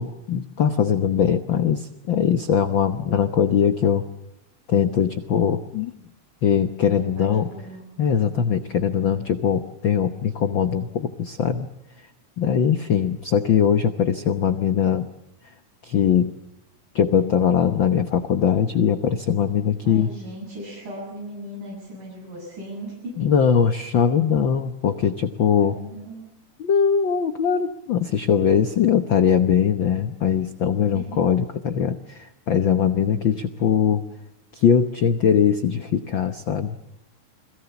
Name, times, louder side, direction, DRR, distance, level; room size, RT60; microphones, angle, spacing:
voice 1, 0.0-4.0 4.7-5.9 6.4-7.5 8.0-11.7 12.4-15.1 15.8-16.3 16.9-20.1 23.2-25.8 26.6-34.0 34.5-36.8, left 7 dB, 85° left, 9 dB, 1.0 m, -21 dB
voice 2, 6.9-7.8 19.8-23.7 25.6-26.3 30.9-31.2 33.0-33.3, right 1 dB, 75° right, -3 dB, 9.0 m, -38 dB
29.5 x 21.5 x 7.1 m, 0.87 s
omnidirectional pair, 3.8 m